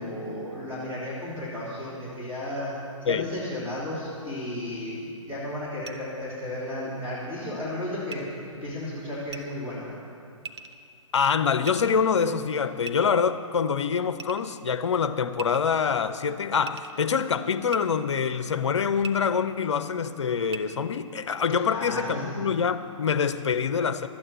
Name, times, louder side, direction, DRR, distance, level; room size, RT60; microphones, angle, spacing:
voice 1, 0.0-2.7 3.0-9.9 21.7-22.5, left 1 dB, 15° right, -10 dB, 3.4 m, -34 dB
sound 1, 5.8-5.9 8.1-8.2 9.3-9.4 10.4-10.8 11.7-12.1 12.9-13.4 14.2-14.5 15.3-15.9 16.6-17.0 17.7-17.8 19.0-19.1 20.5-20.6, right 5 dB, 55° right, 0.8 m, -39 dB
voice 2, 11.1-24.1, left 6 dB, 60° left, 11 dB, 0.7 m, -25 dB
13.0 x 8.7 x 7.6 m, 2.5 s
figure-of-eight pair, 125°, 17 cm